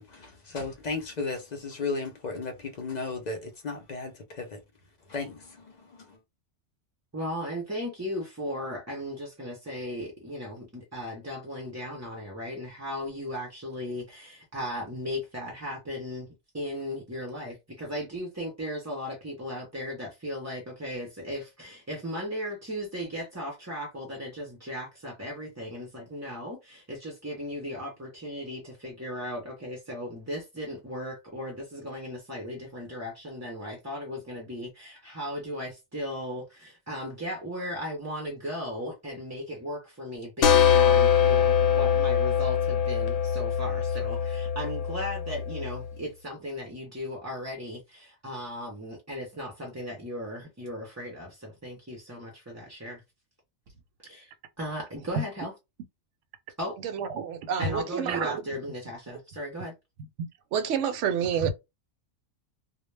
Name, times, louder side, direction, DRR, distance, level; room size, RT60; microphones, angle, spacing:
voice 1, 0.0-4.6 5.1-6.2, left 3 dB, 55° left, 0.5 m, -35 dB
voice 2, 7.1-16.3 16.5-53.0 54.0-54.3 54.6-55.5 56.6-56.8 57.6-59.7, equal, 25° right, 0.4 m, -36 dB
sound 1, 40.4-45.9, left 8 dB, 75° left, 0.9 m, -23 dB
voice 3, 56.8-58.4 60.5-61.5, right 7 dB, 80° right, 0.9 m, -28 dB
2.1 x 2.1 x 3.2 m
omnidirectional pair, 1.3 m